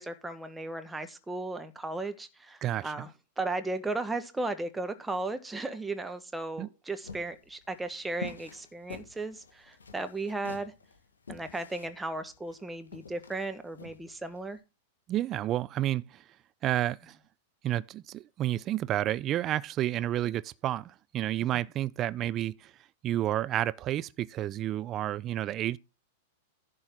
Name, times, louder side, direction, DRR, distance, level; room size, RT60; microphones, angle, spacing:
voice 1, 0.0-3.1 3.4-10.7 11.3-14.6, right 2 dB, 10° right, 1.4 m, -35 dB
voice 2, 2.6-3.1 6.6-6.7 15.1-16.2 16.6-17.2 17.6-22.7 23.0-25.8, right 13 dB, 35° right, 0.4 m, -30 dB
sound 1, 7.0-14.5, left 4 dB, 75° left, 1.6 m, -47 dB
11.0 x 4.0 x 7.5 m
figure-of-eight pair, 95°, 0 cm